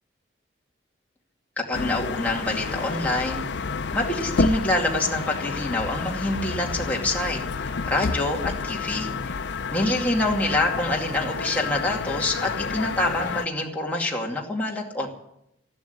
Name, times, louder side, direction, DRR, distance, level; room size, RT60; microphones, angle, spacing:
sound 1, 1.7-13.5, left 4 dB, 70° left, 0.6 m, -30 dB
voice 1, 1.7-9.4 9.7-15.1, left 2 dB, 10° left, -2 dB, 2.4 m, -26 dB
14.0 x 12.5 x 8.0 m, 0.80 s
head